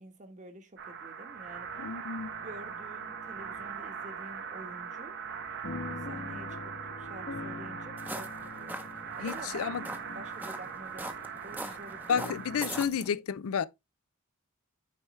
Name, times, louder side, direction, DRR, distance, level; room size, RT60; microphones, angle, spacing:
voice 1, 0.0-1.7 2.4-5.1 5.9-12.3 12.7-12.8, right 1 dB, 35° right, 1.3 m, -49 dB
sound 1, 0.8-12.8, right 7 dB, 55° right, 1.1 m, -41 dB
voice 2, 1.8-2.3 9.2-9.8 12.1-13.7, left 7 dB, 75° left, 0.4 m, -31 dB
sound 2, 2.1-12.9, left 3 dB, 55° left, 1.2 m, -46 dB
sound 3, 8.0-13.1, right 1 dB, 10° right, 0.8 m, -42 dB
9.0 x 4.6 x 3.1 m
head